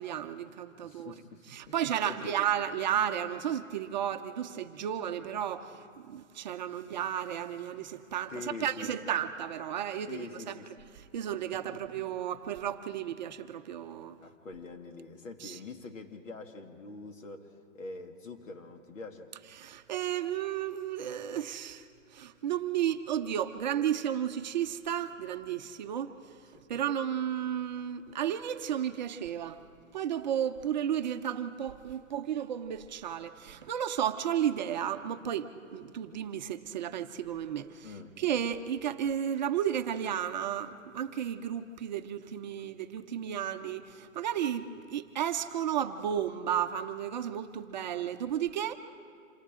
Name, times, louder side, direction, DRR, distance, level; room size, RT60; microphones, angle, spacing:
voice 1, 0.0-1.1 1.5-8.3 8.6-10.6 10.9-14.2 15.4-15.6 19.6-21.8 22.1-26.1 26.7-29.6 29.9-37.9 38.2-48.8, right 10 dB, 35° right, 8 dB, 0.7 m, -33 dB
voice 2, 0.8-1.8 2.0-2.4 8.3-8.9 10.1-10.8 11.5-11.8 14.2-19.3 26.5-26.6 37.8-38.2, left 3 dB, 75° left, 4 dB, 2.2 m, -45 dB
28.0 x 27.0 x 3.7 m, 2.2 s
hypercardioid pair, 160°, 39 cm